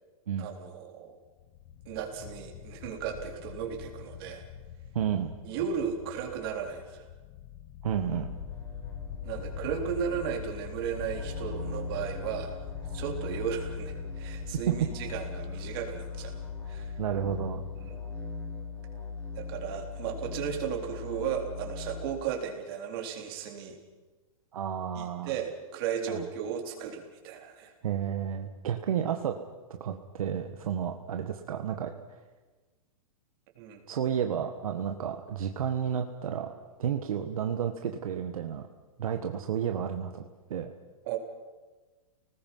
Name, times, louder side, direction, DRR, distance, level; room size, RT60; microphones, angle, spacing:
voice 1, 0.4-1.2 1.9-4.4 5.4-7.1 9.2-12.6 12.9-16.4 16.7-16.9 17.8-18.0 19.3-23.8 25.0-27.7 33.6-33.8 41.1-41.2, right 8 dB, 40° right, 2 dB, 3.9 m, -35 dB
sound 1, 1.2-18.6, left 13 dB, 30° left, 0.8 m, -46 dB
voice 2, 4.9-5.3 7.8-8.3 17.0-17.6 24.5-25.4 26.1-26.3 27.8-29.3 29.8-31.9 33.9-36.5 36.8-38.6 39.0-40.2 40.5-40.7, right 8 dB, 75° right, 5 dB, 1.6 m, -31 dB
sound 2, 8.1-22.2, left 4 dB, 15° left, 4.1 m, -39 dB
30.0 x 19.5 x 5.6 m, 1.3 s
hypercardioid pair, 160°, 18 cm